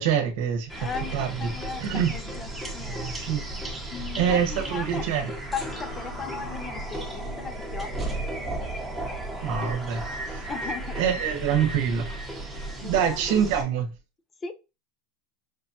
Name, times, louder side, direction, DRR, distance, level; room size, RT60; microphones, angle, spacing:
voice 1, 0.0-0.7 1.1-1.5 1.8-2.1 2.8-3.4 4.2-5.3 9.4-10.4 11.0-12.3 12.8-13.9, right 8 dB, 65° right, 1.0 m, -26 dB
sound 1, 0.7-13.6, right 1 dB, ahead, 1.0 m, -34 dB
voice 2, 0.8-3.2 3.9-5.1 5.5-7.9 8.5-8.6 10.5-11.0 12.8-13.5 14.4-14.5, left 5 dB, 20° left, 0.5 m, -36 dB
5.1 x 2.2 x 2.7 m
supercardioid pair, 130°, 0 cm